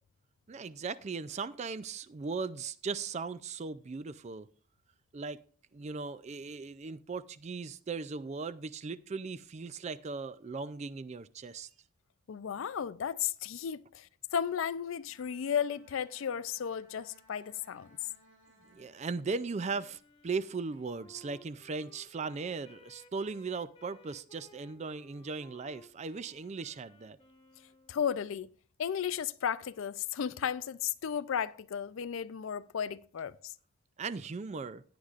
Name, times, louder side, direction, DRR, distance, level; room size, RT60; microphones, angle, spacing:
voice 1, 0.5-4.5 5.1-5.4 5.7-11.7 18.7-27.2 34.0-34.8, right 4 dB, 30° right, 0.3 m, -38 dB
voice 2, 12.3-17.9 27.9-28.5 28.8-33.5, left 8 dB, 65° left, 0.4 m, -34 dB
Bowed string instrument, 14.9-19.6, right 1 dB, 75° right, 5.2 m, -64 dB
Wind instrument woodwind instrument, 19.3-28.2, left 2 dB, 20° left, 1.2 m, -60 dB
16.5 x 9.7 x 2.5 m
head